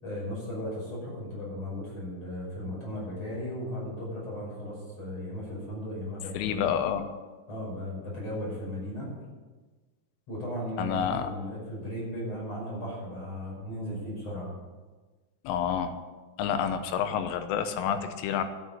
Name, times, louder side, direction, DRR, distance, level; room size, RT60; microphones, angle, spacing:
voice 1, 0.0-6.7 7.5-9.1 10.3-14.5, equal, 30° left, -4 dB, 6.4 m, -36 dB
voice 2, 6.4-7.1 10.8-11.3 15.5-15.9 16.4-18.4, left 8 dB, 85° left, 8 dB, 3.5 m, -28 dB
12.5 x 8.4 x 8.6 m, 1.3 s
omnidirectional pair, 5.6 m